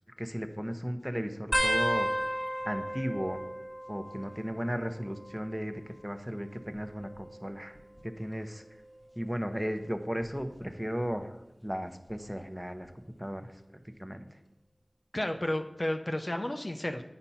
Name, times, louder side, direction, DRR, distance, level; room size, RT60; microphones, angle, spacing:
voice 1, 0.2-2.1 2.6-3.4 3.9-7.7 8.0-8.6 9.2-12.9 13.2-13.5 14.0-14.3, equal, 5° right, 7 dB, 0.7 m, -35 dB
sound 1, 1.5-4.7 5.0-5.6 6.6-8.0 8.7-9.0 10.2-10.6 12.1-12.2, equal, 10° left, 1.1 m, -34 dB
voice 2, 15.1-17.0, left 1 dB, 40° left, 6 dB, 0.5 m, -32 dB
8.7 x 4.1 x 5.6 m, 0.94 s
wide cardioid pair, 45°, 0 cm